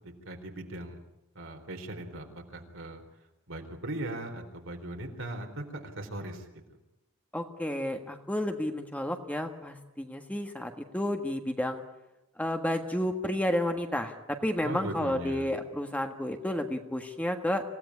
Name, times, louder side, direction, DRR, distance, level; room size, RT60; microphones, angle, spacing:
voice 1, 0.2-1.0 1.3-3.0 3.5-6.4 14.6-15.5, right 1 dB, 65° right, 4 dB, 4.0 m, -39 dB
voice 2, 7.3-11.8 12.4-17.6, left 1 dB, 5° left, 5 dB, 1.5 m, -31 dB
27.0 x 17.0 x 9.8 m, 0.95 s
head